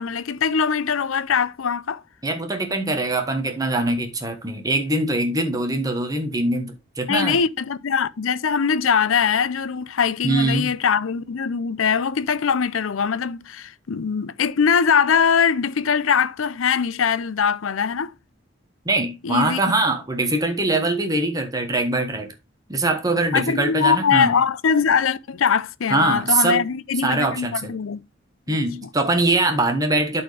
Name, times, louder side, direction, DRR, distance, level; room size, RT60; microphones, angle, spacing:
voice 1, 0.0-2.0 7.1-18.1 19.2-19.6 23.3-28.0 28.5-28.9, left 6 dB, 90° left, 0.5 m, -22 dB
voice 2, 2.2-7.4 10.2-10.7 18.8-22.3 22.7-24.4 25.9-26.6 27.0-27.7 28.5-30.2, right 2 dB, 20° right, 1.2 m, -22 dB
12.0 x 4.4 x 3.2 m
head